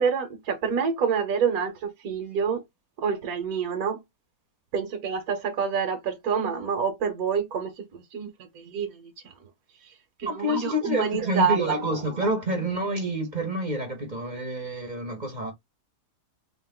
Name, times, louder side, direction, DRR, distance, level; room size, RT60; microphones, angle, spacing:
voice 1, 0.0-2.6 3.0-4.0 4.7-9.1 10.2-12.3, right 6 dB, 65° right, 1.4 m, -27 dB
voice 2, 10.2-15.5, equal, 30° right, 1.0 m, -28 dB
3.9 x 2.5 x 3.6 m
omnidirectional pair, 1.8 m